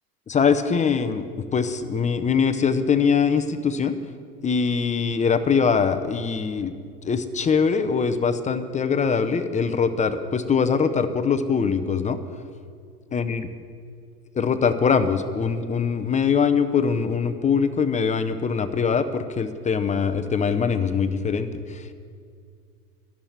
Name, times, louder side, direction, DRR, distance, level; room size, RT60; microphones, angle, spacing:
voice 1, 0.3-4.0 4.4-6.7 7.0-12.2 13.1-13.5 14.3-21.9, left 6 dB, 15° left, 10 dB, 0.7 m, -22 dB
12.5 x 7.5 x 10.0 m, 2.2 s
hypercardioid pair, 100°, 47 cm